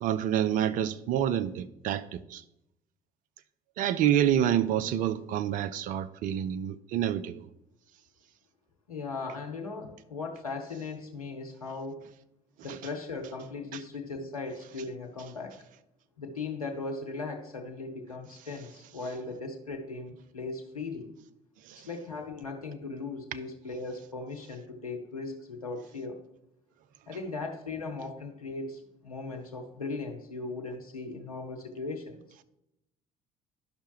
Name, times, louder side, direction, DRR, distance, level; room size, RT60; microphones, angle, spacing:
voice 1, 0.0-2.4 3.8-7.4, right 10 dB, 50° right, 0.4 m, -27 dB
voice 2, 8.9-12.0 12.6-15.6 16.2-21.1 21.7-26.2 27.1-32.2, left 3 dB, 85° left, 0.8 m, -38 dB
12.0 x 5.6 x 3.0 m
figure-of-eight pair, 55°, 18 cm